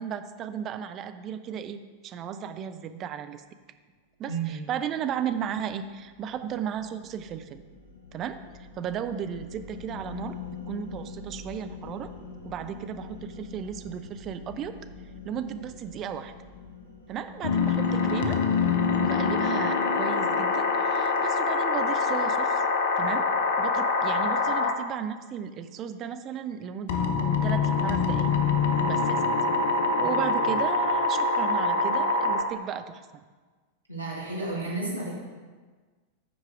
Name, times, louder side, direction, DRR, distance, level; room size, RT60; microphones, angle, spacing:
voice 1, 0.0-3.4 4.2-7.7 8.1-12.1 12.4-14.7 15.2-16.3 17.1-18.4 19.0-22.7 23.0-23.3 23.6-28.3 28.9-29.2 30.0-33.2, right 8 dB, 30° right, 9 dB, 0.5 m, -35 dB
voice 2, 4.3-4.6 30.0-30.6 33.9-35.2, right 3 dB, 85° right, -5 dB, 1.6 m, -33 dB
sound 1, 5.1-19.5, left 5 dB, 75° left, 1.1 m, -45 dB
sound 2, 17.4-24.8 26.9-32.4, left 4 dB, 55° left, 0.7 m, -25 dB
8.2 x 4.7 x 4.9 m, 1.4 s
figure-of-eight pair, 90°, 0 cm